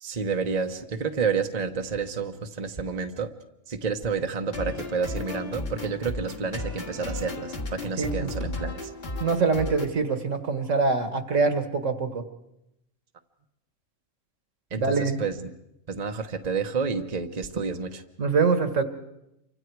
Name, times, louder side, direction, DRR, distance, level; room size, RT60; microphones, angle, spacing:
voice 1, 0.0-3.3 3.7-8.9 14.7-15.5 15.9-18.0, right 5 dB, 30° right, 5 dB, 1.1 m, -30 dB
sound 1, 4.5-9.9, left 2 dB, 45° left, 2.1 m, -34 dB
voice 2, 8.0-8.3 9.2-12.2 14.8-15.2 18.2-18.8, right 4 dB, 65° right, 8 dB, 2.0 m, -24 dB
28.5 x 25.0 x 4.7 m, 0.86 s
omnidirectional pair, 1.4 m